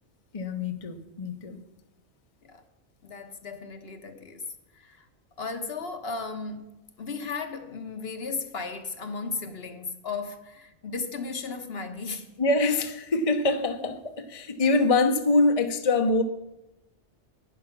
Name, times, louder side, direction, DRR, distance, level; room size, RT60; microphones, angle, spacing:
voice 1, 0.3-1.6 12.4-16.2, left 3 dB, 35° left, 0.9 m, -24 dB
voice 2, 3.0-4.5 4.7-5.1 5.4-12.3, left 4 dB, 60° left, 1.3 m, -35 dB
11.0 x 10.0 x 6.0 m
omnidirectional pair, 1.2 m